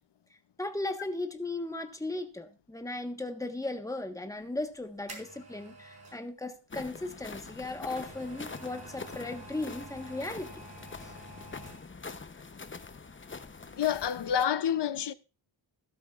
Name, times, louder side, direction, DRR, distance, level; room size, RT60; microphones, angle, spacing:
voice 1, 0.6-10.6 11.0-11.1, left 2 dB, 5° left, 1.3 m, -37 dB
sound 1, 4.5-6.2 7.4-12.1 12.4-12.5, right 2 dB, 50° right, 5.4 m, -49 dB
sound 2, 6.7-14.4, left 4 dB, 25° left, 0.8 m, -45 dB
voice 2, 13.7-15.1, left 9 dB, 60° left, 0.7 m, -28 dB
14.5 x 12.0 x 2.5 m
wide cardioid pair, 80°, 47 cm